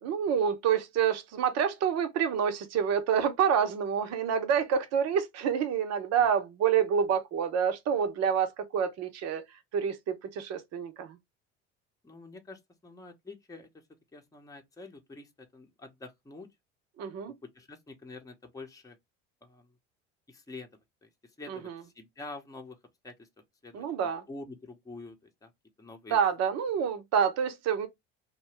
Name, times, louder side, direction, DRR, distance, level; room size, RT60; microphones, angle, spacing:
voice 1, 0.0-11.2 17.0-17.3 21.5-21.8 23.7-24.2 26.1-27.9, right 7 dB, 55° right, 0.9 m, -28 dB
voice 2, 12.0-13.8 14.1-16.5 17.3-19.0 19.4-19.7 20.3-20.7 21.0-21.1 21.4-22.8 23.0-23.3 23.6-25.5 25.8-26.2, left 3 dB, 10° left, 0.9 m, -47 dB
2.7 x 2.3 x 3.2 m
hypercardioid pair, 70°, 31 cm